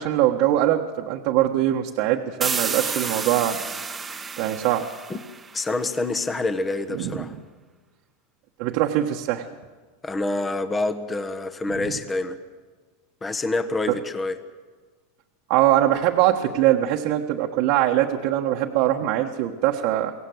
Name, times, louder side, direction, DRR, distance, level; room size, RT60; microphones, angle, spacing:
voice 1, 0.0-3.6 4.4-4.9 6.9-7.3 8.6-9.4 13.9-14.0 15.5-20.1, right 13 dB, 60° right, 0 dB, 1.4 m, -22 dB
sound 1, 2.4-6.0, right 5 dB, 15° right, 1.2 m, -31 dB
voice 2, 5.5-7.3 10.0-12.4 13.2-14.4, left 2 dB, 15° left, 9 dB, 1.3 m, -27 dB
23.5 x 17.0 x 7.9 m, 1.4 s
supercardioid pair, 125°, 0 cm